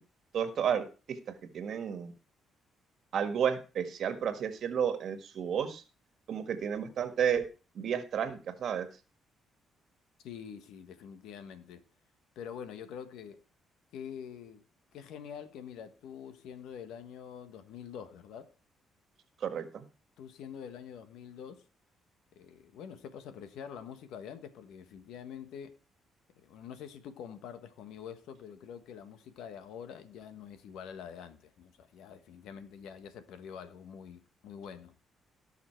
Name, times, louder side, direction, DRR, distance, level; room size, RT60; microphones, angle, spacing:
voice 1, 0.3-1.2 1.5-2.1 3.1-5.8 6.3-7.4 7.7-8.9 19.4-19.8, right 8 dB, 65° right, 1.6 m, -32 dB
voice 2, 10.2-11.8 12.3-13.4 13.9-14.6 14.9-18.5 20.2-21.7 22.3-25.8 26.4-34.9, left 8 dB, 85° left, 1.3 m, -46 dB
17.5 x 5.8 x 4.5 m
cardioid pair, 90°, 0 cm